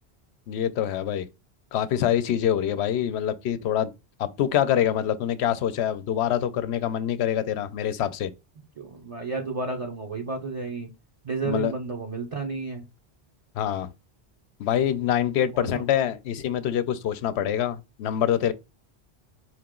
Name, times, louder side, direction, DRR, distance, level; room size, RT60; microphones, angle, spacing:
voice 1, 0.5-1.3 1.7-3.9 4.2-8.3 11.4-11.7 13.6-13.9 14.6-18.5, left 10 dB, 85° left, 0.8 m, -25 dB
voice 2, 8.8-10.9 11.2-12.9 15.5-15.9, right 3 dB, 35° right, 0.7 m, -32 dB
4.8 x 2.9 x 3.6 m
omnidirectional pair, 1.1 m